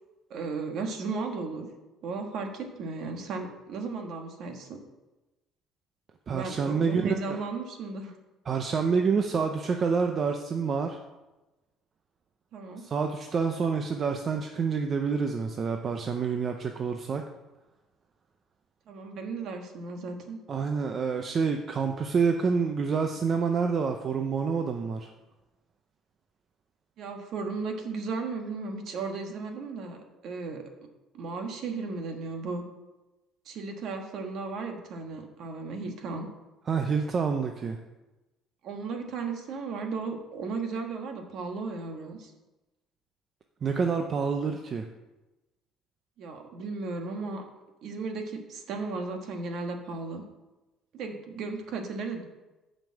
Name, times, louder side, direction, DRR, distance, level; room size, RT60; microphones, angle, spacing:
voice 1, 0.3-1.7 2.0-4.8 6.3-8.1 12.5-12.8 18.9-20.4 27.0-30.0 30.2-30.6 31.1-32.6 33.4-36.3 38.6-42.3 46.2-47.4 47.8-50.2 50.9-52.2, right 4 dB, 50° right, 4 dB, 1.4 m, -35 dB
voice 2, 6.3-7.4 8.5-11.0 12.8-17.2 20.5-25.1 36.7-37.8 43.6-44.9, right 5 dB, 25° right, 4 dB, 0.5 m, -27 dB
9.3 x 5.2 x 7.5 m, 1.1 s
cardioid pair, 180°, 0 cm